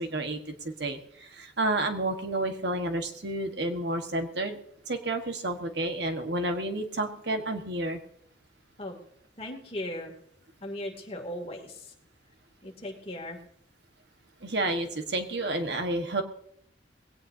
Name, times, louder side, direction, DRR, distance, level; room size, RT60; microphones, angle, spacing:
voice 1, 0.0-4.6 4.9-8.0 14.4-16.2, right 2 dB, 60° right, 5 dB, 1.5 m, -30 dB
voice 2, 9.4-10.1 10.6-11.9 12.6-13.4, left 1 dB, 30° left, 1 dB, 2.7 m, -37 dB
20.0 x 17.5 x 2.8 m, 0.70 s
head